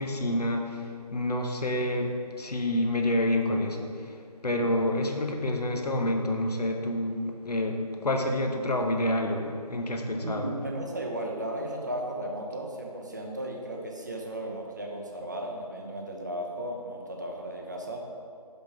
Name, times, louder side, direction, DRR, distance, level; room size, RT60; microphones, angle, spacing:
voice 1, 0.0-4.2 4.4-10.5, left 1 dB, 80° left, 3 dB, 1.1 m, -28 dB
voice 2, 10.2-18.1, right 1 dB, 30° right, 0 dB, 0.6 m, -35 dB
5.7 x 5.5 x 5.6 m, 2.3 s
figure-of-eight pair, 165°, 20 cm